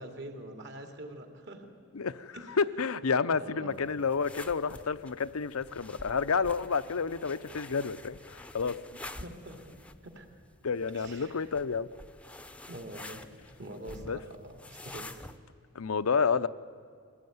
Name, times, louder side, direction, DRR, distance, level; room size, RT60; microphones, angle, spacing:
voice 1, 0.0-1.7 2.3-2.6 3.3-3.8 8.9-10.3 10.9-11.4 12.7-15.3, right 1 dB, 55° right, 4 dB, 2.7 m, -45 dB
voice 2, 1.9-8.8 10.6-11.9 14.1-14.2 15.7-16.5, left 5 dB, 85° left, 13 dB, 0.7 m, -30 dB
sound 1, 3.7-15.4, left 2 dB, 5° left, 0.7 m, -48 dB
23.0 x 17.5 x 9.5 m, 2.3 s
head